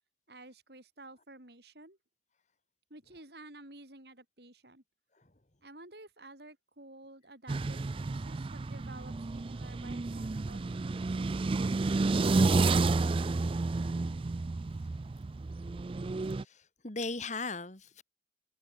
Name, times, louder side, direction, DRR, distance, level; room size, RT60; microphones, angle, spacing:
voice 1, 0.3-2.0 2.9-4.8 5.6-11.1, right 2 dB, 60° right, 5.2 m, -52 dB
sound 1, 7.5-16.4, right 3 dB, 30° right, 0.4 m, -30 dB
voice 2, 16.4-18.0, left 3 dB, 40° left, 2.2 m, -38 dB
head